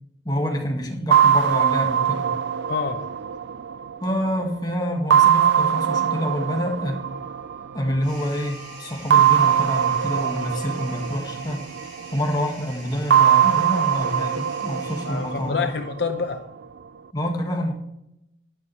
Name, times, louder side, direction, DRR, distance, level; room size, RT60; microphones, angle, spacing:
voice 1, 0.3-2.3 4.0-7.0 7.7-11.6 12.1-15.7 17.1-17.7, equal, 20° left, 1 dB, 1.8 m, -27 dB
sound 1, 1.1-4.4 5.1-8.0 9.1-12.2 13.1-16.2, right 9 dB, 70° right, 0.4 m, -21 dB
voice 2, 2.7-3.1 15.0-16.4, left 5 dB, 60° left, 6 dB, 0.7 m, -27 dB
Wind instrument woodwind instrument, 6.9-11.2, right 2 dB, 10° right, 2.2 m, -48 dB
sound 2, 8.0-15.8, right 2 dB, 50° right, 3.7 m, -44 dB
12.0 x 11.0 x 3.2 m, 0.83 s
head